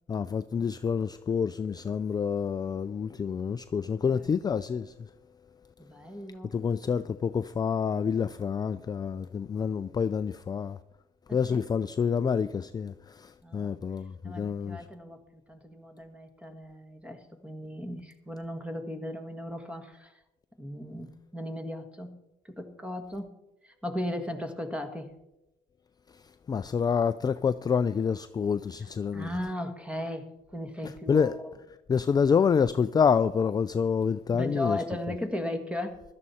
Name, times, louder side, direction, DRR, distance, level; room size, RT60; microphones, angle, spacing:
voice 1, 0.1-4.9 6.5-10.8 11.3-14.8 26.5-29.3 31.1-31.4 31.9-34.8, left 6 dB, 25° left, 0.4 m, -27 dB
voice 2, 5.8-6.6 11.3-11.6 13.4-13.8 14.2-15.2 15.5-20.2 20.6-22.1 22.4-23.3 23.6-25.1 29.1-31.3 34.3-36.0, left 1 dB, 5° right, 1.7 m, -36 dB
16.0 x 12.5 x 4.3 m
cardioid pair, 110°, 17 cm